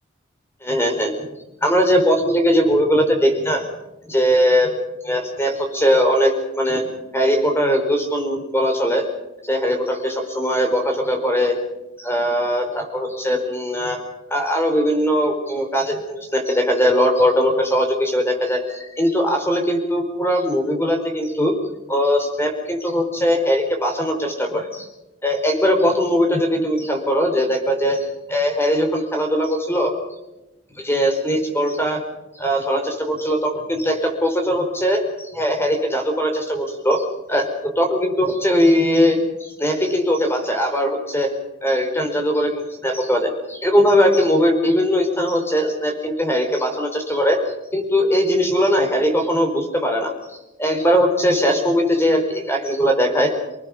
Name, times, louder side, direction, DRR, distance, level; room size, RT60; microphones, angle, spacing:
voice 1, 0.6-1.1 1.6-3.7 4.1-4.7 5.0-9.0 9.4-11.5 12.0-14.0 14.3-21.5 21.9-24.9 25.2-29.9 30.8-32.0 32.3-41.3 41.6-50.1 50.6-53.3, equal, 10° left, 4 dB, 4.8 m, -20 dB
29.0 x 20.0 x 5.7 m, 0.98 s
head